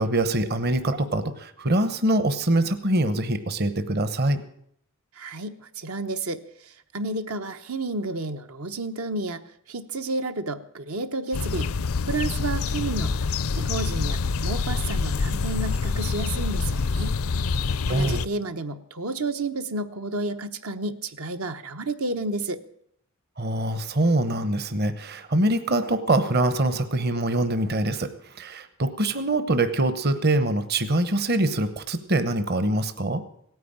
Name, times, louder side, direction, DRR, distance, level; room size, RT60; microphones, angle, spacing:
voice 1, 0.0-4.4 17.9-18.2 23.4-33.2, right 1 dB, 45° right, 12 dB, 1.0 m, -24 dB
voice 2, 5.1-9.4 9.7-11.7 12.1-13.1 13.5-17.1 17.9-22.6, right 2 dB, 75° right, 8 dB, 1.1 m, -31 dB
sound 1, 11.3-18.3, left 4 dB, 75° left, 0.5 m, -26 dB
17.0 x 9.4 x 8.7 m, 0.68 s
head